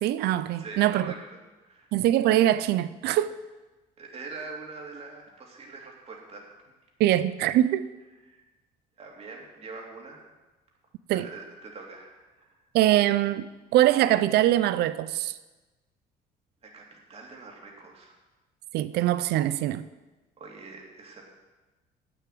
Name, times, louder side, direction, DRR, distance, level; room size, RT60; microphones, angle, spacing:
voice 1, 0.0-1.1 1.9-3.3 7.0-7.9 11.1-11.3 12.7-15.3 18.7-19.9, right 13 dB, 75° right, 0.5 m, -23 dB
voice 2, 0.6-1.2 1.6-1.9 4.0-6.4 8.2-8.4 9.0-10.2 11.1-12.6 16.6-18.1 20.4-21.2, right 3 dB, 35° right, 2.8 m, -43 dB
8.8 x 7.1 x 7.7 m
cardioid pair, 110°, 17 cm